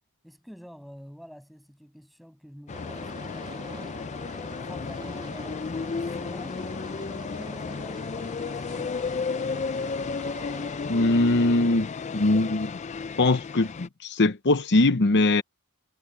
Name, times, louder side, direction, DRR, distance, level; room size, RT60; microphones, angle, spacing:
voice 1, 0.2-4.1 4.6-9.0, equal, ahead, 7.5 m, -48 dB
sound 1, 2.7-13.9, left 5 dB, 30° left, 0.4 m, -33 dB
sound 2, 2.7-11.7, right 2 dB, 20° right, 2.4 m, -46 dB
voice 2, 10.8-12.7 13.2-15.4, left 2 dB, 50° left, 0.8 m, -22 dB
head